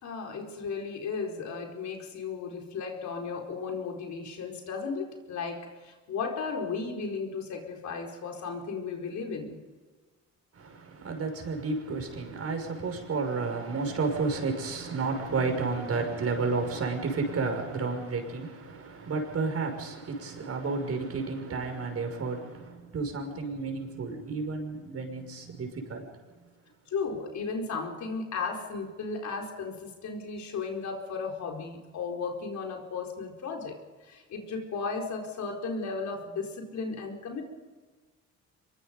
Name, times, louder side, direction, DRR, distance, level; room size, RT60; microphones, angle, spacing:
voice 1, 0.0-9.6 26.9-37.4, left 4 dB, 70° left, 4.6 m, -35 dB
voice 2, 10.5-26.1, right 4 dB, 55° right, 6.1 m, -31 dB
25.0 x 22.5 x 5.3 m
cardioid pair, 90°, 30 cm